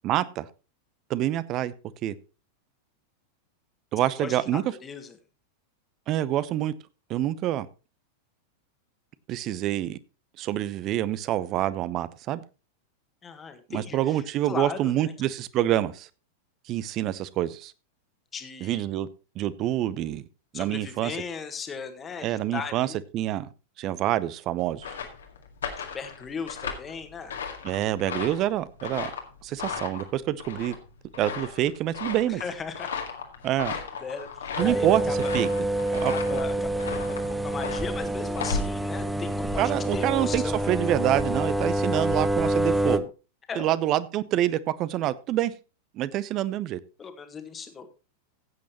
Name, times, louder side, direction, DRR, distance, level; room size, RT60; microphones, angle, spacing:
voice 1, 0.0-0.5 1.1-1.7 2.0-2.1 3.9-4.6 6.1-6.7 7.1-7.7 9.3-10.0 10.4-12.4 13.7-16.1 16.7-17.7 18.6-19.1 19.4-20.2 20.5-21.2 22.2-23.5 23.8-24.9 27.6-29.1 29.4-30.8 31.2-32.4 33.4-33.8 34.6-35.5 35.9-36.4 39.6-43.1 43.5-45.5 45.9-46.8, right 13 dB, 35° right, 0.7 m, -27 dB
voice 2, 4.2-5.1 13.2-15.1 18.3-18.8 20.5-23.0 25.9-27.3 32.4-32.9 34.0-34.3 34.6-35.3 36.0-40.7 43.5-43.7 47.0-47.9, left 5 dB, 20° left, 1.6 m, -37 dB
sound 1, 24.6-39.9, left 6 dB, 65° left, 2.0 m, -36 dB
sound 2, 34.6-43.0, right 1 dB, 5° right, 0.8 m, -27 dB
15.5 x 8.4 x 3.0 m
figure-of-eight pair, 90°, 0 cm